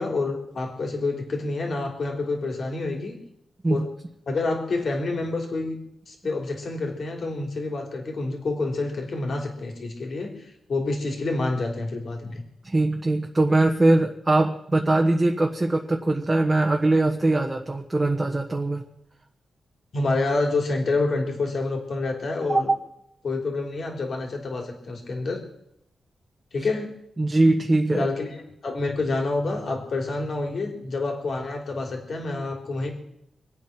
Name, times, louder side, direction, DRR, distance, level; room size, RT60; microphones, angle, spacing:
voice 1, 0.0-3.2 3.7-3.9 4.3-5.8 6.1-10.4 10.7-12.4 19.9-22.7 23.2-25.4 26.5-26.9 27.9-32.9, left 3 dB, 55° left, 2 dB, 3.6 m, -28 dB
voice 2, 12.6-18.8 22.5-22.6 27.2-28.1, right 2 dB, 20° right, 1 dB, 1.3 m, -21 dB
25.0 x 8.6 x 6.1 m, 0.80 s
wide cardioid pair, 105°, 0 cm